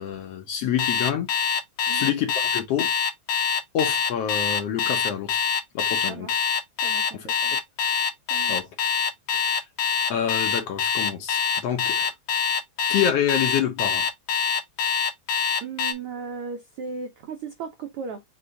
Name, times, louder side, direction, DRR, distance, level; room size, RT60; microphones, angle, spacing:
voice 1, 0.0-1.3 1.9-2.9 3.7-5.4 5.7-6.3 7.1-7.3 8.5-8.7 9.3-9.6 10.1-12.1 12.9-14.1, left 9 dB, 65° left, 1.7 m, -27 dB
Alarm, 0.8-15.9, left 7 dB, 85° left, 1.2 m, -24 dB
voice 2, 5.9-6.3 6.8-7.5 8.3-8.6 15.6-18.2, right 5 dB, 80° right, 1.2 m, -36 dB
5.4 x 2.6 x 3.8 m
omnidirectional pair, 3.4 m